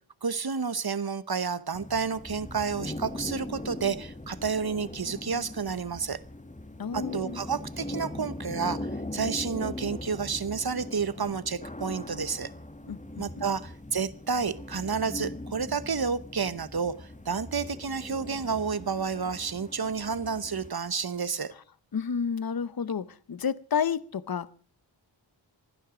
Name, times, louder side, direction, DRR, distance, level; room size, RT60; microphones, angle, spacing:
voice 1, 0.2-6.2 6.9-12.5 13.2-21.5, right 5 dB, 50° right, 1.0 m, -30 dB
sound 1, 1.7-20.7, left 1 dB, 15° left, 1.0 m, -40 dB
voice 2, 6.8-7.4 12.9-13.5 21.9-24.5, left 6 dB, 45° left, 0.8 m, -31 dB
27.0 x 10.0 x 5.0 m
wide cardioid pair, 50°, 49 cm